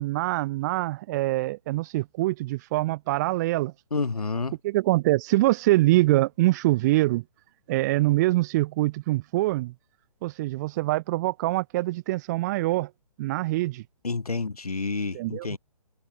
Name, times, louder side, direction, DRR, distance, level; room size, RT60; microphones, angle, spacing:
voice 1, 0.0-3.7 4.6-7.2 7.7-9.7 10.2-12.9 13.2-13.8 15.1-15.5, right 18 dB, 25° right, 1.4 m, -24 dB
voice 2, 3.9-4.5 14.0-15.6, left 4 dB, 70° left, 2.9 m, -29 dB
figure-of-eight pair, 130°, 20 cm